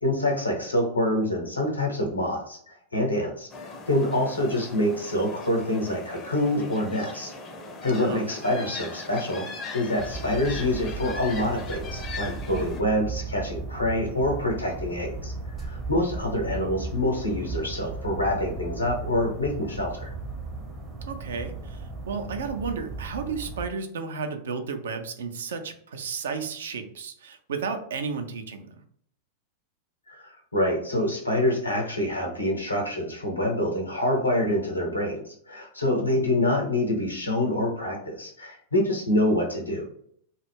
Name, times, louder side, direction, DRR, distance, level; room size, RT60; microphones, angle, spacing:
voice 1, 0.0-7.3 7.8-9.5 9.7-15.3 15.6-20.1 30.1-39.8, left 1 dB, 80° left, 0 dB, 0.8 m, -26 dB
sound 1, 3.5-12.8, left 3 dB, 25° left, 0.5 m, -39 dB
voice 2, 7.9-8.2 21.0-28.7, right 5 dB, 65° right, 7 dB, 0.4 m, -33 dB
sound 2, 10.0-23.7, right 3 dB, 25° right, 0.6 m, -36 dB
2.2 x 2.0 x 3.3 m, 0.63 s
figure-of-eight pair, 90°, 0 cm